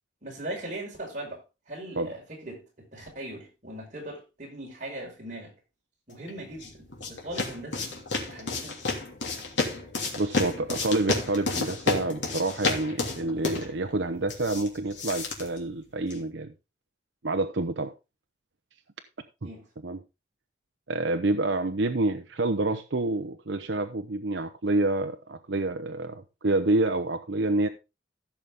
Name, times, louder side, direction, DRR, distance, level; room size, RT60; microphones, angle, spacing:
voice 1, 0.2-1.4 1.7-5.5 6.1-7.9 8.3-8.8 19.4-19.7, right 1 dB, 40° right, 5.3 m, -39 dB
sound 1, 6.3-16.3, left 3 dB, 90° left, 3.1 m, -32 dB
voice 2, 10.2-16.5 17.2-17.9 19.4-19.5 19.8-20.0 20.9-27.7, right 2 dB, 80° right, 0.8 m, -28 dB
15.0 x 6.8 x 3.6 m
head